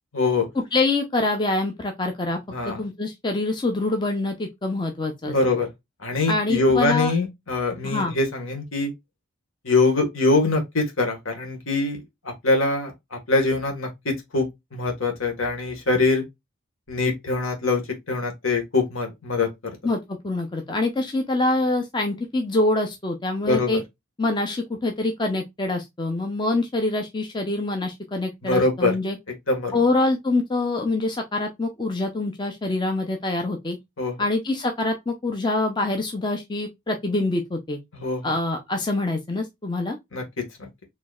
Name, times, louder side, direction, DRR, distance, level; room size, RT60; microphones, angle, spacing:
voice 1, 0.1-0.5 2.5-2.8 5.2-5.7 6.0-8.9 9.6-16.2 16.9-17.8 18.1-19.5 23.4-23.8 28.4-28.9 29.5-29.7 34.0-34.2 37.9-38.3 40.1-40.2 40.6-40.7, left 3 dB, 70° left, 1.6 m, -23 dB
voice 2, 0.7-2.4 2.7-5.4 6.3-7.1 7.8-8.1 19.8-23.8 24.2-29.2 29.7-33.8 34.2-37.8 38.2-40.0, left 2 dB, 20° left, 0.5 m, -25 dB
4.5 x 3.1 x 2.3 m
head